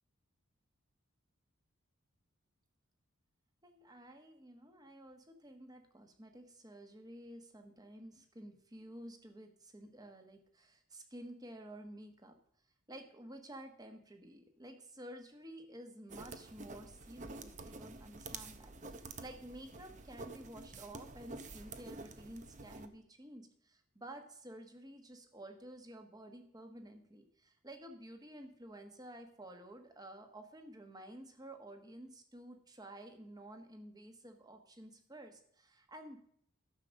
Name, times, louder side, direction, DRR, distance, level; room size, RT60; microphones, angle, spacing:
voice 1, 3.6-12.4 12.9-36.2, right 1 dB, 20° right, 6 dB, 1.3 m, -52 dB
sound 1, 16.1-22.9, right 3 dB, 35° right, 0.7 m, -49 dB
12.5 x 6.6 x 6.5 m, 0.65 s
head